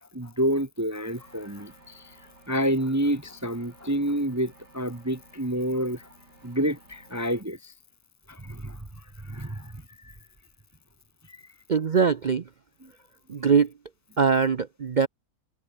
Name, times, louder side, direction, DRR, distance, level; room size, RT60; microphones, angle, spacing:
voice 1, 0.1-2.0 2.5-6.1 6.4-7.7 8.3-8.8 9.2-9.7 10.0-10.1 11.3-11.4 12.8-12.9, equal, 15° right, 0.7 m, -28 dB
sound 1, 1.1-7.4, right 2 dB, 90° right, 8.1 m, -55 dB
voice 2, 11.7-12.4 13.3-13.7 14.2-15.1, right 6 dB, 55° right, 0.5 m, -22 dB
omnidirectional pair, 1.8 m